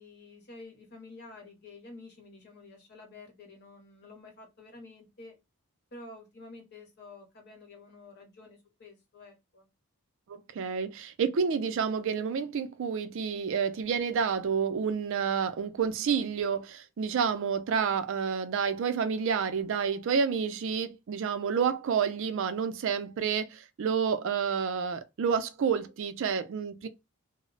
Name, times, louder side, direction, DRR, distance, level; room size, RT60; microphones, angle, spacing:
voice 1, 0.0-5.4 5.9-9.7, left 3 dB, 50° left, 0.9 m, -50 dB
voice 2, 10.3-26.9, right 6 dB, 60° right, 0.4 m, -29 dB
2.0 x 2.0 x 3.7 m
head